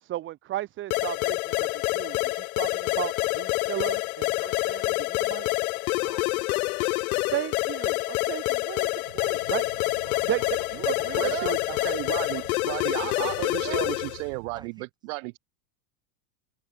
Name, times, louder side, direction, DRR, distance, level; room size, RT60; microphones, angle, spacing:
voice 1, 0.0-5.5 7.1-8.9 9.1-9.6 10.2-10.4 10.7-11.6 13.0-13.9, right 14 dB, 25° right, 1.4 m, -34 dB
sound 1, 0.9-14.2, left 23 dB, 65° left, 1.2 m, -27 dB
voice 2, 6.0-6.7 8.9-9.3 10.0-12.5 14.5-14.9, right 4 dB, 10° right, 2.7 m, -50 dB
sound 2, 9.1-14.7, right 18 dB, 85° right, 4.3 m, -48 dB
voice 3, 11.2-15.4, right 31 dB, 50° right, 3.6 m, -34 dB
supercardioid pair, 175°, 47 cm